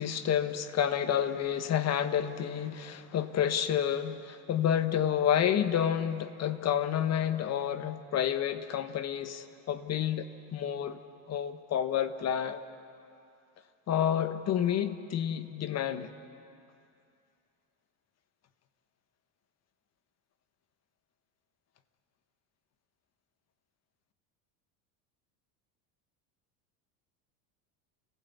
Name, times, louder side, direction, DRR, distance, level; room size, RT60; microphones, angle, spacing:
voice 1, 0.0-11.0 11.3-12.6 13.9-16.1, left 9 dB, 40° left, 10 dB, 1.4 m, -29 dB
30.0 x 16.0 x 8.4 m, 2.5 s
supercardioid pair, 125°, 41 cm